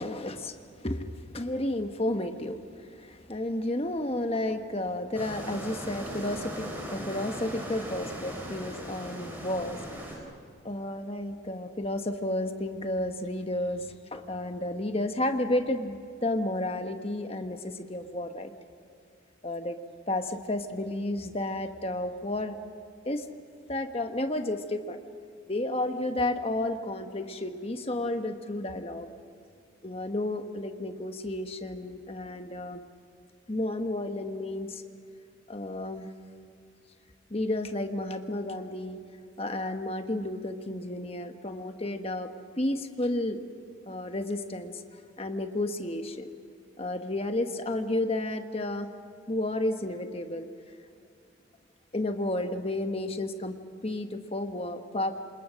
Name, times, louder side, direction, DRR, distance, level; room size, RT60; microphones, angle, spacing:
voice 1, 0.0-9.8 10.1-10.2 10.6-18.5 19.4-19.8 20.1-22.6 23.0-23.2 23.7-25.0 25.5-29.1 29.8-32.8 33.5-34.8 35.5-36.1 37.3-39.0 39.4-42.3 42.6-43.4 43.9-44.8 45.2-46.3 46.8-48.9 49.3-50.5 51.9-55.1, left 1 dB, 30° left, 7 dB, 1.2 m, -32 dB
sound 1, 5.1-10.2, equal, 10° right, 4.0 m, -39 dB
27.5 x 27.0 x 6.4 m, 2.3 s
head